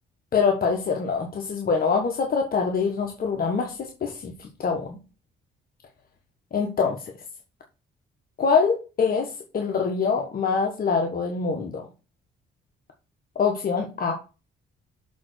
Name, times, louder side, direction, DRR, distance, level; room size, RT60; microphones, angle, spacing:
voice 1, 0.3-5.0 6.5-7.0 8.4-11.9 13.4-14.1, left 5 dB, 50° left, 2 dB, 1.4 m, -24 dB
7.0 x 3.9 x 6.4 m, 0.31 s
cardioid pair, 90°, 20 cm